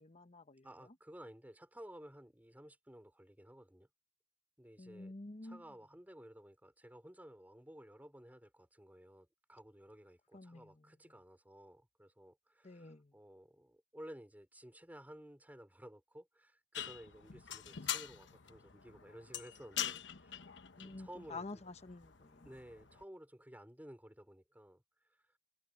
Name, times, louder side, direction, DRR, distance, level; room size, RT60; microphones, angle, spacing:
voice 1, 0.0-0.7 4.8-5.6 10.3-10.8 12.6-13.1 20.8-22.5, left 3 dB, 35° left, 1.1 m, -49 dB
voice 2, 0.6-3.9 4.6-5.1 5.4-20.4 20.8-21.4 22.4-24.8, equal, 10° right, 4.3 m, -55 dB
sound 1, 16.7-23.0, left 10 dB, 75° left, 1.1 m, -44 dB
head